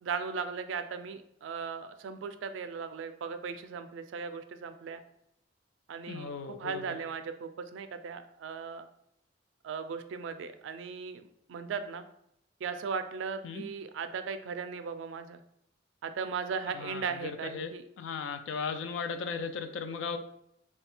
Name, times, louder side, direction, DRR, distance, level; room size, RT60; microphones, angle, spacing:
voice 1, 0.0-5.0 5.9-8.9 9.6-12.0 12.6-15.4 16.0-17.8, right 5 dB, 90° right, 9 dB, 0.3 m, -37 dB
voice 2, 6.1-7.0 13.4-13.6 16.7-17.7 18.0-20.2, left 5 dB, 85° left, 9 dB, 0.4 m, -37 dB
3.2 x 2.3 x 4.3 m, 0.75 s
head